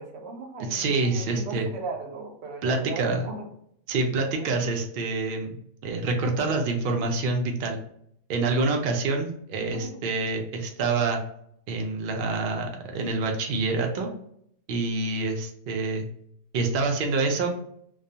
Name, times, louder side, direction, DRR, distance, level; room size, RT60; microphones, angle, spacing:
voice 1, 0.0-3.5 4.4-4.7 9.5-10.0, right 3 dB, 65° right, 3 dB, 0.7 m, -38 dB
voice 2, 0.7-1.7 2.6-3.2 3.9-5.6 5.8-7.8 8.3-11.2 11.7-14.1 14.7-16.1 16.5-17.5, right 3 dB, 85° right, 2 dB, 0.4 m, -26 dB
2.3 x 2.2 x 2.7 m, 0.69 s
omnidirectional pair, 1.5 m